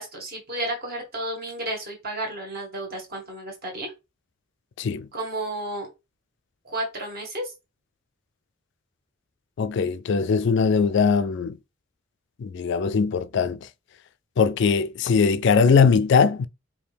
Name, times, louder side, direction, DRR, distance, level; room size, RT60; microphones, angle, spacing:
voice 1, 0.0-3.9 5.1-5.9 6.7-7.5, right 1 dB, 50° right, 1.7 m, -32 dB
voice 2, 9.6-11.6 12.4-13.6 14.4-16.5, left 5 dB, 60° left, 0.3 m, -20 dB
4.9 x 2.7 x 3.4 m
head